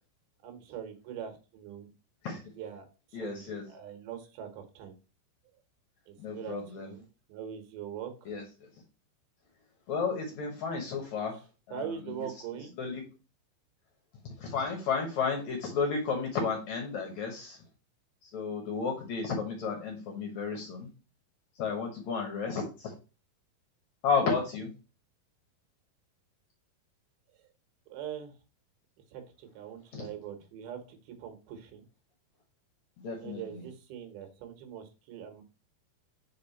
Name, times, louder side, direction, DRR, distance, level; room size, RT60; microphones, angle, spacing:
voice 1, 0.4-1.9 2.5-5.0 6.1-8.3 11.3-11.4 11.7-12.7 24.2-24.3 27.4-27.5 27.9-28.4 29.1-31.9 33.1-35.4, right 8 dB, 75° right, 5 dB, 2.9 m, -42 dB
voice 2, 3.1-3.6 6.2-6.9 8.3-8.4 9.9-11.4 11.7-11.8 12.8-13.0 14.2-17.6 18.2-20.9 21.6-22.9 24.0-24.7 29.9-30.0 33.0-33.7, left 5 dB, 60° left, 2 dB, 2.0 m, -32 dB
5.3 x 4.9 x 4.1 m, 0.32 s
omnidirectional pair, 4.5 m